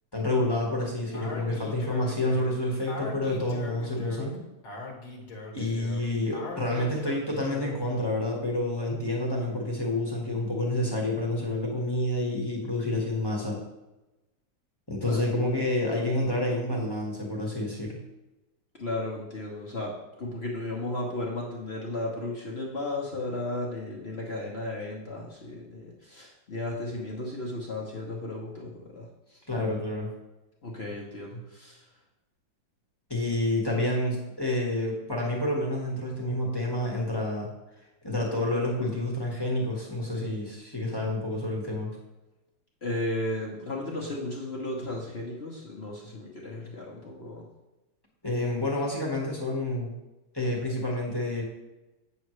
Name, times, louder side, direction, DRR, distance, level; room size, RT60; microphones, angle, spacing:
voice 1, 0.1-4.4 5.5-13.6 14.9-18.0 29.5-30.1 33.1-37.5 38.0-41.9 48.2-49.9 50.3-51.4, left 1 dB, 15° left, -2 dB, 1.2 m, -29 dB
Speech, 1.1-7.9, left 3 dB, 60° left, 1.9 m, -40 dB
voice 2, 18.8-29.4 30.6-31.9 42.8-47.4, left 2 dB, 40° left, -3 dB, 1.1 m, -34 dB
8.6 x 7.1 x 3.1 m, 1.0 s
omnidirectional pair, 2.1 m